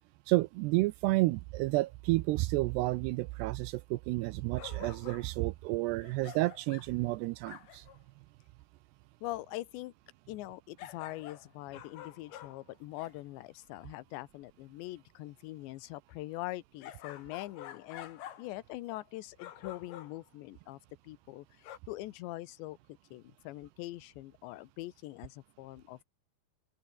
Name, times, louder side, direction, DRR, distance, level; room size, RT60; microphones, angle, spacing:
voice 1, 0.3-7.9, right 20 dB, 85° right, 2.5 m, -30 dB
sound 1, 4.6-5.3 6.0-7.0 7.5-8.0 10.8-13.2 16.8-18.6 18.9-19.1 19.4-20.3 21.6-21.8, left 11 dB, 65° left, 3.4 m, -48 dB
voice 2, 9.2-9.9 10.3-20.8 21.0-22.8 23.1-26.0, left 17 dB, 80° left, 3.1 m, -43 dB
open air
omnidirectional pair, 5.2 m